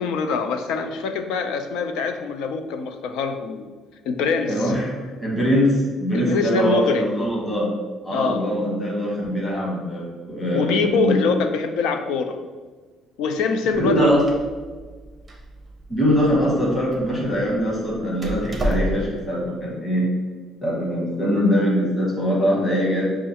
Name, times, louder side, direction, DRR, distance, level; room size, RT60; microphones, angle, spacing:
voice 1, 0.0-3.7 4.1-4.8 6.1-7.1 8.1-8.4 10.5-12.4 13.2-14.1, left 5 dB, 85° left, 7 dB, 0.4 m, -24 dB
voice 2, 4.5-7.7 8.0-11.2 13.7-14.2 15.9-20.1 20.6-23.1, equal, 15° left, -5 dB, 1.1 m, -22 dB
Door, 13.8-19.3, equal, 10° right, 0.5 m, -32 dB
6.2 x 2.4 x 2.8 m, 1.4 s
cardioid pair, 165°, 0 cm